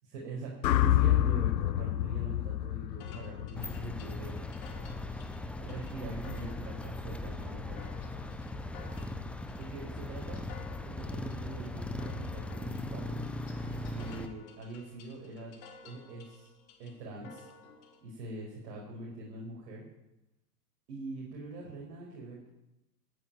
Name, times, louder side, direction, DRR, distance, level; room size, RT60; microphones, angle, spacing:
voice 1, 0.0-4.4 5.2-7.9 9.6-10.4 10.8-13.2 13.9-15.5 15.8-16.5 16.8-17.5 18.0-19.9 20.9-22.5, right 2 dB, 65° right, -2 dB, 5.3 m, -43 dB
sound 1, 0.6-4.8, left 12 dB, 85° left, 0.8 m, -28 dB
sound 2, 3.0-18.0, left 5 dB, 55° left, 4.0 m, -55 dB
sound 3, 3.5-14.3, left 2 dB, 5° left, 0.4 m, -39 dB
13.5 x 9.4 x 9.2 m, 0.92 s
hypercardioid pair, 110°, 50 cm